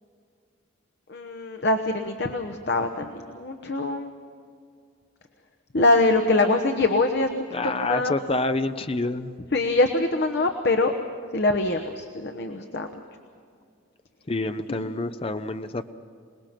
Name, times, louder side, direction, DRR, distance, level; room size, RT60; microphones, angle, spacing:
voice 1, 1.1-4.1 5.7-7.3 7.6-8.1 9.5-11.0 11.3-12.9 14.7-14.9, left 2 dB, 55° left, 5 dB, 1.1 m, -23 dB
voice 2, 7.5-9.3 12.6-12.7 14.3-15.9, left 2 dB, 30° left, 10 dB, 0.7 m, -28 dB
27.0 x 19.5 x 6.0 m, 2.2 s
head